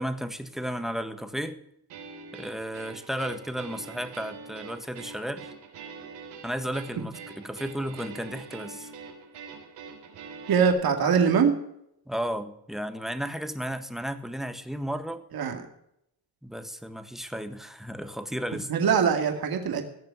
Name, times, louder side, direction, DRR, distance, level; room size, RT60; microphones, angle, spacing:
voice 1, 0.0-1.6 2.3-5.5 6.4-8.9 12.1-15.2 16.4-18.7, equal, ahead, 9 dB, 1.6 m, -33 dB
sound 1, 1.9-10.7, right 5 dB, 90° right, 3.5 m, -44 dB
voice 2, 10.5-11.6 15.3-15.6 18.7-19.8, right 6 dB, 60° right, 4 dB, 2.4 m, -22 dB
17.0 x 6.8 x 9.5 m, 0.77 s
cardioid pair, 80°, 40 cm